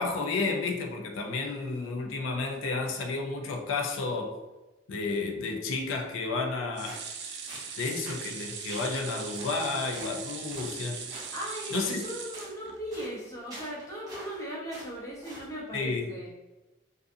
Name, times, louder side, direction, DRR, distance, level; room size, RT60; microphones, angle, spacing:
voice 1, 0.0-4.4 4.9-7.0 7.8-11.1 11.7-12.0 15.7-16.1, left 3 dB, 90° left, 3 dB, 0.4 m, -31 dB
sound 1, 6.7-13.1 13.5-13.6 13.9-14.0, right 6 dB, 60° right, 0.4 m, -40 dB
sound 2, 6.9-7.1 7.5-7.7 8.1-8.3 8.7-8.9 9.3-9.5 9.9-10.1 10.5-10.7 11.1-11.3 11.7-11.9 12.3-12.5 12.9-13.1 13.5-14.4 14.7-14.9 15.2-15.5, right 1 dB, 20° right, 0.7 m, -45 dB
voice 2, 11.3-16.3, equal, 15° left, -5 dB, 0.6 m, -38 dB
2.4 x 2.4 x 2.5 m, 1.1 s
head